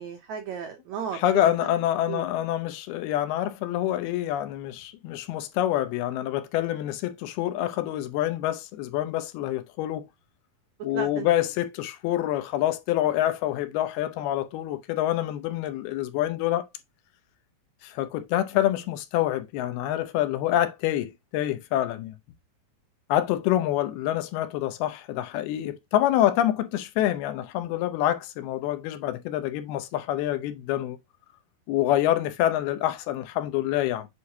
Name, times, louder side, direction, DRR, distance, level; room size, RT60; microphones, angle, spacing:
voice 1, 0.0-1.8 2.1-2.2 10.9-11.3 18.5-18.6, right 7 dB, 85° right, 1.6 m, -35 dB
voice 2, 1.1-10.0 10.8-16.6 17.8-22.1 23.1-31.0 31.7-34.1, left 13 dB, 90° left, 2.8 m, -26 dB
8.2 x 4.8 x 2.7 m
omnidirectional pair, 4.4 m